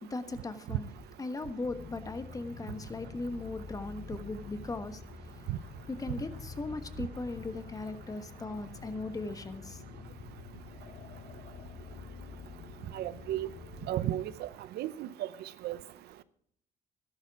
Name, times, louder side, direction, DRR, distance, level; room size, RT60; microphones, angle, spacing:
voice 1, 0.0-0.9 1.2-5.0 5.9-10.0, left 2 dB, 20° left, 1.3 m, -38 dB
sound 1, 1.6-14.1, left 5 dB, 50° left, 1.2 m, -47 dB
voice 2, 12.9-13.5 13.9-14.5 14.8-15.1 15.6-15.8, right 13 dB, 75° right, 0.7 m, -33 dB
13.0 x 11.5 x 4.8 m
cardioid pair, 110°, 17 cm